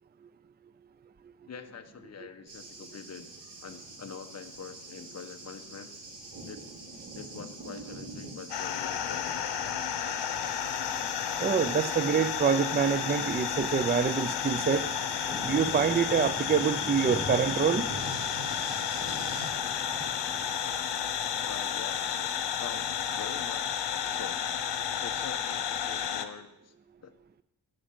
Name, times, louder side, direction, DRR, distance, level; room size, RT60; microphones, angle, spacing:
voice 1, 1.5-3.3 3.6-5.9 6.4-6.7 7.1-9.5 21.4-24.4 25.0-26.7 27.0-27.1, left 6 dB, 40° left, 6 dB, 1.3 m, -45 dB
Thunder, 2.5-19.5, right 2 dB, 75° right, 5.1 m, -45 dB
sound 1, 8.5-26.3, left 8 dB, 90° left, 1.2 m, -32 dB
voice 2, 11.4-14.9 15.4-17.9, right 6 dB, 25° right, 13 dB, 0.5 m, -26 dB
sound 2, 15.2-20.6, right 1 dB, 5° right, 1.1 m, -44 dB
11.5 x 10.5 x 8.7 m, 0.88 s
wide cardioid pair, 140°, 41 cm